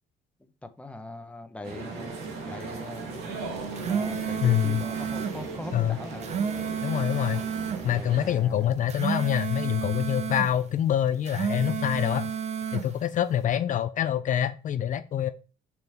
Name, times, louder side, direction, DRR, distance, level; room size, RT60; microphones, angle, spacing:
voice 1, 0.4-3.3 3.7-6.3 7.8-8.8, left 2 dB, 5° left, 1.0 m, -42 dB
sound 1, 1.6-8.3, right 4 dB, 80° right, 3.0 m, -37 dB
sound 2, 3.6-5.4 6.0-7.8 8.7-10.5 11.1-12.9, right 7 dB, 40° right, 0.9 m, -31 dB
voice 2, 4.4-4.8 5.7-6.0 6.8-7.4 7.8-12.3 12.7-15.3, left 10 dB, 50° left, 0.5 m, -26 dB
6.8 x 6.3 x 3.6 m
cardioid pair, 110°, 17 cm